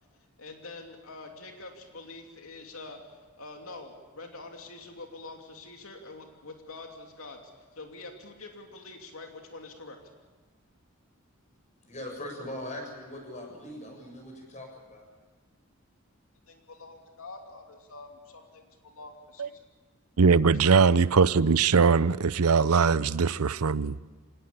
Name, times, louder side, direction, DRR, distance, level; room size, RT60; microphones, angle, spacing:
voice 1, 0.4-7.4 7.7-10.0 16.5-19.7 20.4-20.9, left 3 dB, 75° left, 2.9 m, -45 dB
voice 2, 11.8-15.0, left 1 dB, 35° left, 7.4 m, -40 dB
voice 3, 20.2-24.1, right 5 dB, 90° right, 0.7 m, -21 dB
26.0 x 19.5 x 8.8 m
head